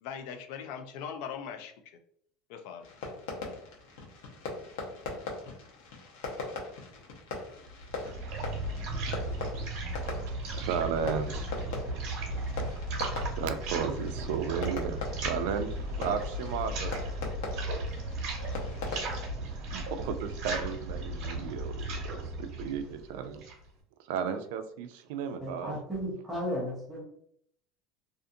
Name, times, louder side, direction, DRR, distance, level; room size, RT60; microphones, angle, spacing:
voice 1, 0.0-1.7 2.5-2.8, left 7 dB, 60° left, 7 dB, 0.3 m, -40 dB
Fireworks, 2.8-19.3, left 3 dB, 90° left, 0.7 m, -41 dB
sound 1, 7.7-23.7, right 1 dB, 50° right, 1.1 m, -35 dB
voice 2, 10.3-11.5 12.7-12.9 13.4-17.3 19.4-23.5 24.0-25.8, right 7 dB, 75° right, 9 dB, 0.3 m, -34 dB
voice 3, 25.3-27.0, equal, 5° right, -5 dB, 0.6 m, -35 dB
2.5 x 2.5 x 2.6 m, 0.67 s
cardioid pair, 170°, 0 cm